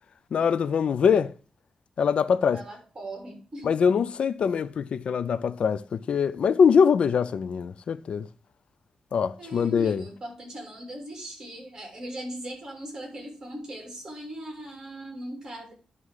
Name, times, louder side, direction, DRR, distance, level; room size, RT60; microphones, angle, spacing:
voice 1, 0.3-1.3 2.0-2.6 3.6-8.3 9.1-10.0, left 6 dB, 65° left, 0.4 m, -23 dB
voice 2, 2.5-3.7 9.4-15.7, right 1 dB, 30° right, 3.5 m, -39 dB
11.0 x 3.7 x 6.3 m
wide cardioid pair, 130°, 2 cm